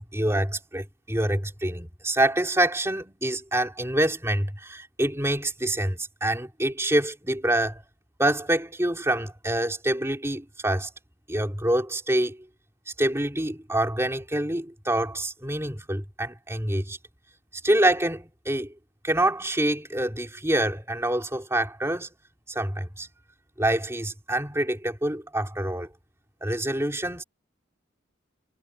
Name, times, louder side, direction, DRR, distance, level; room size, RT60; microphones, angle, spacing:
voice 1, 0.0-7.8 8.2-10.9 11.3-12.4 13.0-17.0 17.6-18.7 19.0-22.1 22.5-23.1 23.6-25.9 26.4-27.2, right 1 dB, 15° right, 3.3 m, -26 dB
head